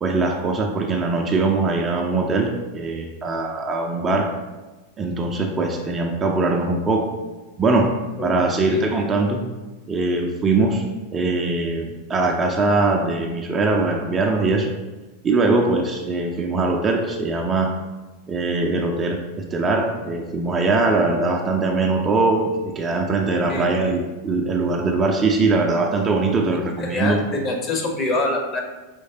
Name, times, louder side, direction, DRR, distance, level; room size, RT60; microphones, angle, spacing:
voice 1, 0.0-4.3 5.0-7.1 7.6-9.5 9.9-10.8 11.1-14.7 15.2-17.8 18.3-27.2, right 3 dB, 20° right, 2 dB, 0.4 m, -21 dB
voice 2, 8.2-8.8 23.5-23.7 26.8-28.6, left 2 dB, 25° left, 2 dB, 0.7 m, -25 dB
5.1 x 3.1 x 2.7 m, 1.2 s
figure-of-eight pair, 90°, 0 cm